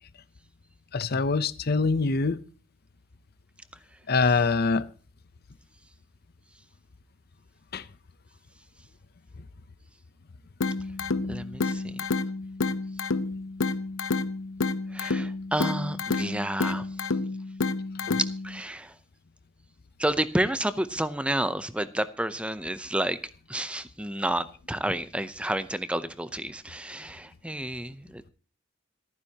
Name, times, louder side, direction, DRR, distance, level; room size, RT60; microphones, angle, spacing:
voice 1, 0.9-2.4 4.1-4.9 7.7-7.8 18.1-18.2, left 4 dB, 50° left, 0.7 m, -24 dB
sound 1, 10.6-18.6, left 3 dB, 90° left, 0.9 m, -30 dB
voice 2, 11.3-12.0 14.9-17.2 18.2-19.0 20.0-23.2 23.5-28.3, right 1 dB, 5° right, 0.6 m, -30 dB
26.0 x 9.8 x 2.9 m
head